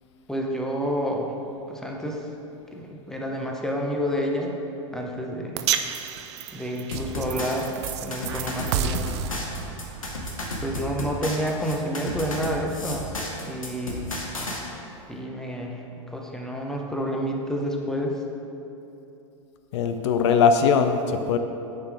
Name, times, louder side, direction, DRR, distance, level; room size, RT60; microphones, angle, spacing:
voice 1, 0.3-1.3 1.7-2.3 2.7-4.6 4.9-5.7 6.5-7.7 8.0-9.0 10.6-13.1 13.5-14.1 15.1-18.2, equal, 5° left, 0 dB, 0.8 m, -29 dB
sound 1, 5.6-11.9, right 8 dB, 55° right, 0.4 m, -32 dB
sound 2, 6.9-14.6, left 1 dB, 90° left, 1.0 m, -33 dB
voice 2, 19.7-21.4, left 6 dB, 60° left, 7 dB, 0.5 m, -20 dB
9.2 x 4.5 x 3.5 m, 2.9 s
hypercardioid pair, 100°, 17 cm